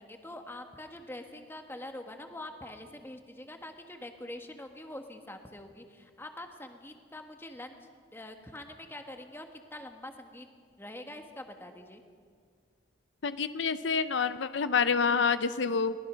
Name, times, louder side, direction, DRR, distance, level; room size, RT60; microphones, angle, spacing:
voice 1, 0.0-7.8 8.1-10.5 10.8-12.0, left 1 dB, 10° left, 5 dB, 1.6 m, -45 dB
voice 2, 13.2-15.9, left 5 dB, 70° left, 12 dB, 0.6 m, -27 dB
23.0 x 19.0 x 6.3 m, 2.1 s
head